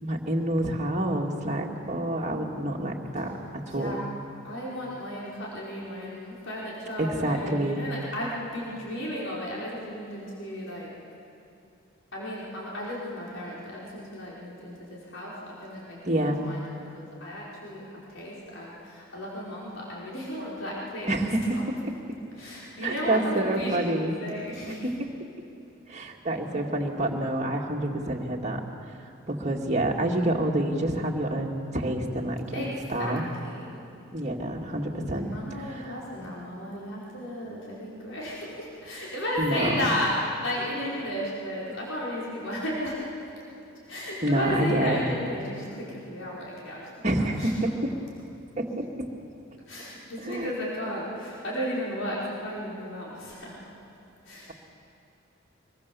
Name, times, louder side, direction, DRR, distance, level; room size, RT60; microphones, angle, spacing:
voice 1, 0.0-3.9 7.0-7.9 16.1-16.4 21.1-21.6 22.8-24.1 24.8-25.1 25.9-28.6 29.3-33.2 34.1-35.3 35.7-36.0 39.4-39.9 44.2-45.1 47.0-47.9 48.6-49.1 50.2-50.5, right 1 dB, 35° right, 0 dB, 2.1 m, -28 dB
voice 2, 3.7-4.0 4.4-10.9 12.1-21.6 22.4-24.8 26.3-26.8 32.5-33.7 35.1-43.3 43.9-47.7 49.7-53.6 54.2-54.5, left 1 dB, 65° left, -6 dB, 4.9 m, -34 dB
24.5 x 22.0 x 7.0 m, 2.7 s
head